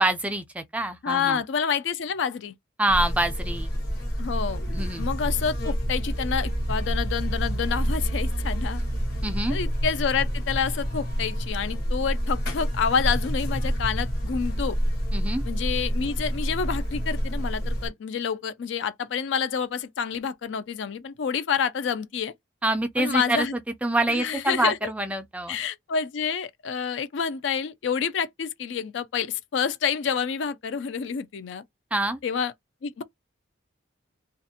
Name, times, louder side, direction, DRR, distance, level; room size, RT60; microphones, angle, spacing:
voice 1, 0.0-1.4 2.8-3.7 4.7-5.1 9.2-9.6 15.1-15.4 22.6-25.6 31.9-32.2, right 1 dB, 5° right, 0.3 m, -26 dB
voice 2, 1.0-2.5 4.2-4.6 5.0-8.8 9.5-14.8 15.5-22.3 23.0-23.5 24.1-24.9 25.5-31.6 32.2-32.5 32.8-33.0, left 6 dB, 65° left, 0.4 m, -28 dB
Buzz, 2.9-17.9, equal, 50° left, 0.9 m, -28 dB
2.4 x 2.1 x 2.7 m
head